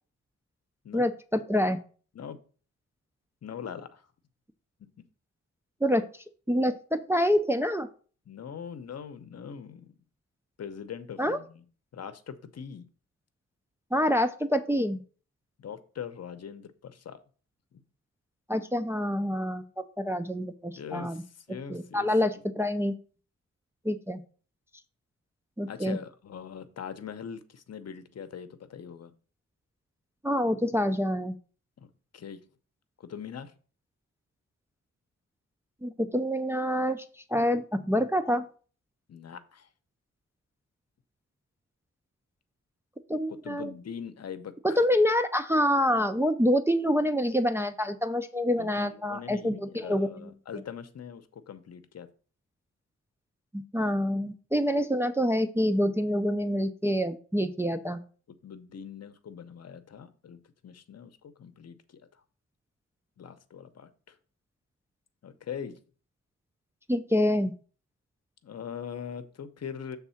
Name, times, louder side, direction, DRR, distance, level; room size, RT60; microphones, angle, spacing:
voice 1, 0.9-1.8 5.8-6.0 6.5-7.9 11.2-11.4 13.9-15.0 18.5-21.2 21.7-22.9 23.9-24.2 25.6-26.0 30.2-31.4 35.8-37.0 37.3-38.5 43.1-43.7 44.6-50.1 53.5-58.0 66.9-67.5, equal, 10° right, 7 dB, 0.4 m, -26 dB
voice 2, 3.4-4.0 4.8-4.9 8.3-9.9 10.6-11.6 11.9-12.8 15.6-17.2 17.7-17.8 20.8-22.1 25.7-29.1 31.8-32.4 33.0-33.5 39.1-39.7 43.4-44.8 48.6-52.1 58.4-62.0 63.2-64.2 65.2-65.8 68.4-70.0, left 7 dB, 60° left, 11 dB, 0.7 m, -42 dB
7.2 x 3.6 x 5.7 m, 0.40 s
wide cardioid pair, 140°, 29 cm